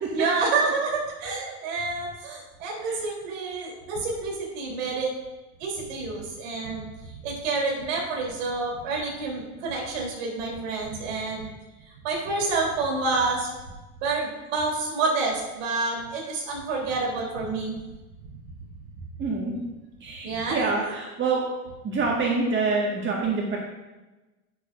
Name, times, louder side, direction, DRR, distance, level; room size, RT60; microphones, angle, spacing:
voice 1, 0.1-5.1 5.6-6.9 7.2-11.5 12.0-13.5 14.0-17.8 20.2-20.9, right 3 dB, 60° right, -2 dB, 3.7 m, -28 dB
voice 2, 19.2-19.5 20.0-21.4 21.8-23.6, right 4 dB, 25° right, -2 dB, 1.8 m, -26 dB
11.5 x 10.0 x 2.6 m, 1.1 s
figure-of-eight pair, 75°, 44 cm